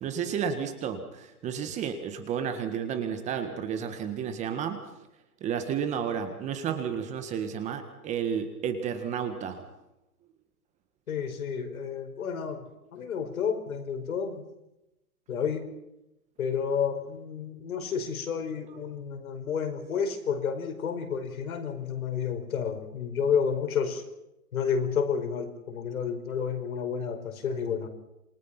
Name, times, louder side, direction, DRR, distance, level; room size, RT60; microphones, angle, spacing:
voice 1, 0.0-4.8 5.4-9.6, right 7 dB, 15° right, 8 dB, 1.6 m, -32 dB
voice 2, 11.1-12.7 12.9-14.4 15.3-15.7 16.4-24.0 24.5-27.9, left 6 dB, 65° left, 6 dB, 5.1 m, -30 dB
28.0 x 21.0 x 5.9 m, 0.90 s
hypercardioid pair, 150°, 45 cm